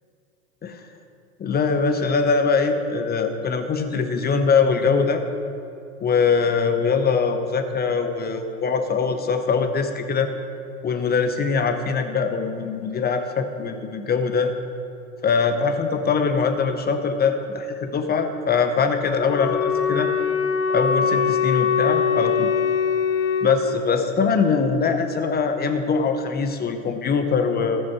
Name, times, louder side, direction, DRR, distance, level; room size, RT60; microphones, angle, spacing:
voice 1, 1.4-5.2 6.0-10.3 10.8-14.5 15.2-20.1 20.7-22.5 23.4-27.8, left 5 dB, 25° left, 6 dB, 0.9 m, -22 dB
Wind instrument woodwind instrument, 19.2-23.6, left 6 dB, 45° left, 1.3 m, -22 dB
18.5 x 6.4 x 4.7 m, 2.6 s
hypercardioid pair, 95°, 40 cm